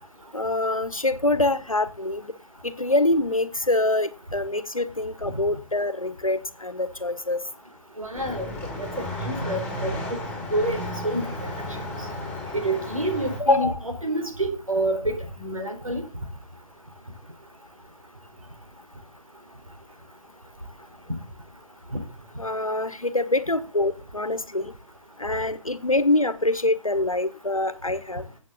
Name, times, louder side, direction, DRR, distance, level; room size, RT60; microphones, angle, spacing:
voice 1, 0.3-2.3 2.6-7.4 13.4-13.8 22.4-24.7 25.2-28.2, left 2 dB, 90° left, 1.4 m, -25 dB
voice 2, 8.0-8.4 8.8-8.9 9.3-9.9 10.5-11.2 12.5-16.0, right 1 dB, 85° right, 4.5 m, -27 dB
sound 1, 8.1-13.4, left 1 dB, 5° left, 6.2 m, -33 dB
15.0 x 8.4 x 4.0 m
figure-of-eight pair, 140°, 17 cm